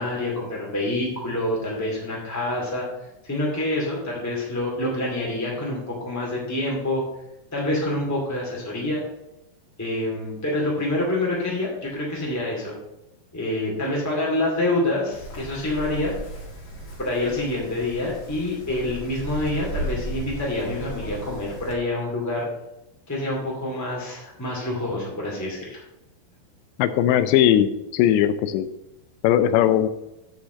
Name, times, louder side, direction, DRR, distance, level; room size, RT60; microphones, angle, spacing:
voice 1, 0.0-2.8 3.2-7.0 7.5-9.0 9.8-12.7 13.3-16.1 17.0-22.5 23.1-25.8, left 1 dB, 25° left, -3 dB, 0.3 m, -27 dB
Wind, 15.1-21.7, equal, 65° left, 0.9 m, -35 dB
voice 2, 26.8-28.7 29.2-29.9, left 11 dB, 85° left, 12 dB, 2.9 m, -19 dB
9.0 x 5.0 x 6.9 m, 0.92 s
omnidirectional pair, 5.0 m